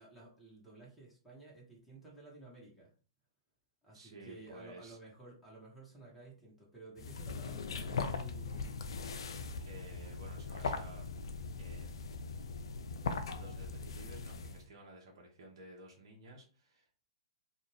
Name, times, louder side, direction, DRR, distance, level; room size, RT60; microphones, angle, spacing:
voice 1, 0.0-2.9 3.8-8.9, right 3 dB, ahead, -7 dB, 1.1 m, -54 dB
voice 2, 3.9-5.0 9.6-11.1 11.6-12.4 13.2-17.0, right 1 dB, 60° right, -1 dB, 1.0 m, -54 dB
sound 1, 7.0-14.7, left 4 dB, 70° left, 0.4 m, -40 dB
2.6 x 2.4 x 3.1 m, 0.39 s
hypercardioid pair, 115°, 3 cm